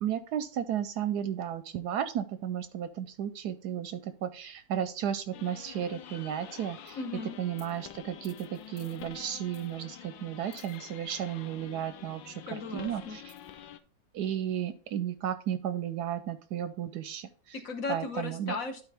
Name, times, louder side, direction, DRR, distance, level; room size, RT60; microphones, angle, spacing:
voice 1, 0.0-7.0 7.4-13.2 14.1-17.6 17.9-18.6, right 10 dB, 70° right, 11 dB, 1.1 m, -34 dB
sound 1, 5.3-13.8, left 10 dB, 85° left, 1.4 m, -48 dB
voice 2, 6.9-7.4 12.5-13.2 17.5-18.9, left 4 dB, 55° left, 5 dB, 1.3 m, -36 dB
11.5 x 4.4 x 3.4 m, 0.39 s
omnidirectional pair, 2.0 m